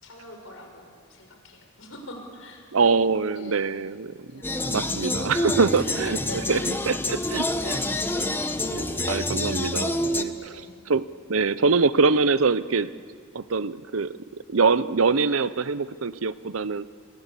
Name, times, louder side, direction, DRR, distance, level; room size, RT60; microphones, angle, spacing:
voice 1, 0.0-2.6 3.4-3.7 4.3-4.7 5.4-6.7 7.1-8.0 10.3-10.7, left 1 dB, 75° left, 3 dB, 5.8 m, -42 dB
voice 2, 2.7-6.2 6.5-6.6 6.9-7.8 8.6-10.6 10.9-12.9 13.3-14.1 14.5-16.9, right 4 dB, 85° right, 16 dB, 0.8 m, -24 dB
sound 1, 4.4-10.2, left 1 dB, 10° left, 1.1 m, -27 dB
29.0 x 23.0 x 8.4 m, 2.2 s
head